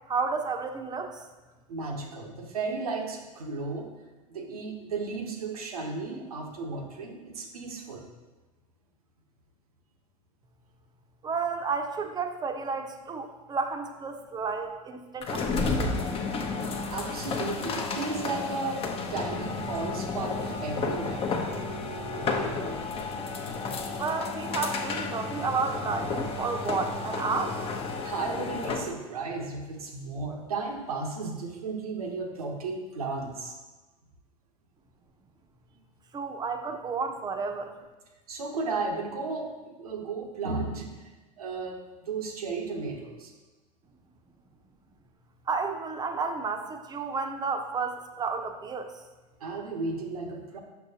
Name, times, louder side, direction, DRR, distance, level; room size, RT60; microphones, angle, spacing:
voice 1, 0.1-1.2 11.2-15.9 24.0-27.6 36.1-37.7 45.5-48.9, right 4 dB, 20° right, 6 dB, 0.7 m, -31 dB
voice 2, 1.7-3.9 4.3-8.1 16.9-21.2 28.0-33.5 38.3-41.1 41.4-43.3 49.4-50.6, right 3 dB, 90° right, 2 dB, 1.0 m, -34 dB
sound 1, 15.2-28.9, left 3 dB, 30° left, 0.7 m, -32 dB
6.9 x 5.9 x 2.8 m, 1.2 s
hypercardioid pair, 95°, 18 cm